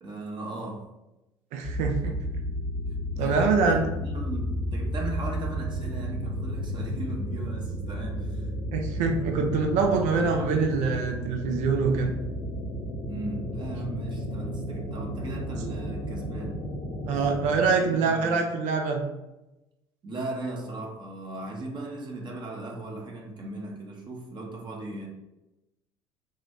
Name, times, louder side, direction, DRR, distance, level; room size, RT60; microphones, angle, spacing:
voice 1, 0.0-0.8 3.1-8.5 13.0-16.6 17.8-18.3 20.0-25.1, right 2 dB, 35° right, 0 dB, 1.0 m, -37 dB
voice 2, 1.5-2.2 3.2-3.9 8.7-12.1 17.1-19.0, right 4 dB, 60° right, 3 dB, 0.7 m, -25 dB
sound 1, 1.6-17.6, equal, 90° left, 1.0 m, -32 dB
4.0 x 2.6 x 3.2 m, 0.95 s
hypercardioid pair, 65°, 14 cm